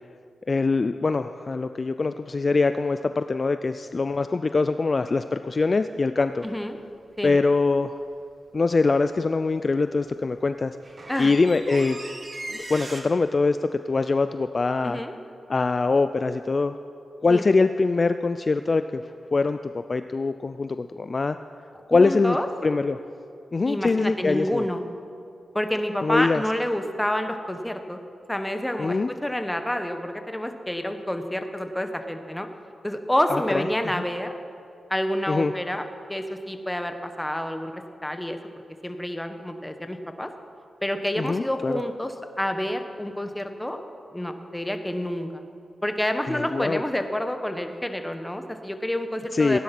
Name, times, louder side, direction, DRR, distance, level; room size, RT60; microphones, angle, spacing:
voice 1, 0.5-6.4 7.2-7.9 8.5-10.8 11.2-12.0 12.5-15.0 15.5-16.8 17.2-19.0 19.3-19.6 19.9-21.4 21.9-22.4 22.6-23.0 23.5-24.7 26.0-26.4 28.8-29.1 33.3-33.7 33.9-34.0 35.3-35.5 41.2-41.8 46.3-46.8 49.3-49.6, left 3 dB, 40° left, 10 dB, 0.4 m, -23 dB
voice 2, 6.4-6.8 7.2-7.4 11.1-11.3 14.8-15.1 17.3-17.4 21.9-22.5 23.7-24.8 25.5-28.0 28.3-32.5 32.8-34.4 34.9-38.4 38.8-40.3 40.8-43.8 44.1-45.4 45.8-49.6, left 1 dB, 10° left, 6 dB, 1.1 m, -28 dB
sound 1, 6.4-6.6 10.2-10.3 10.6-13.0, right 2 dB, 40° right, 1.8 m, -38 dB
16.0 x 10.5 x 6.0 m, 2.4 s
cardioid pair, 80°, 0 cm